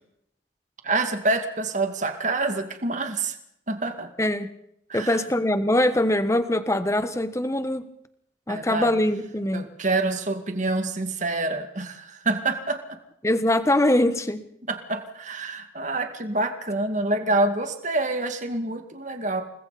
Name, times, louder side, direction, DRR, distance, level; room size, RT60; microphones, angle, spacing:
voice 1, 0.8-3.4 3.7-4.1 4.9-5.2 8.5-8.9 9.5-12.8 14.7-19.4, right 2 dB, 40° right, 6 dB, 2.3 m, -27 dB
voice 2, 4.2-4.5 4.9-7.9 8.5-9.7 13.2-14.4, left 1 dB, 15° left, 11 dB, 1.3 m, -23 dB
29.0 x 21.0 x 4.2 m, 0.75 s
head